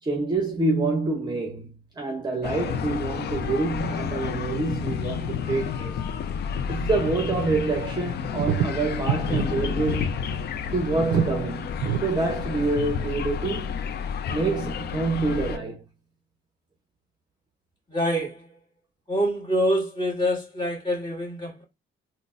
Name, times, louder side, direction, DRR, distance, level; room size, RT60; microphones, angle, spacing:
voice 1, 0.0-6.0 6.7-10.1 10.7-13.8 14.3-15.8, right 3 dB, 20° right, 0.7 m, -27 dB
sound 1, 2.4-15.6, left 7 dB, 55° left, 0.4 m, -30 dB
sound 2, 8.4-9.5 9.8-9.9 10.3-10.4 10.8-11.4 11.8-12.0 12.6-12.7, right 8 dB, 70° right, 0.5 m, -26 dB
voice 2, 17.9-18.5 19.1-21.6, equal, 20° left, 1.9 m, -26 dB
3.8 x 2.1 x 2.4 m
cardioid pair, 90°, 20 cm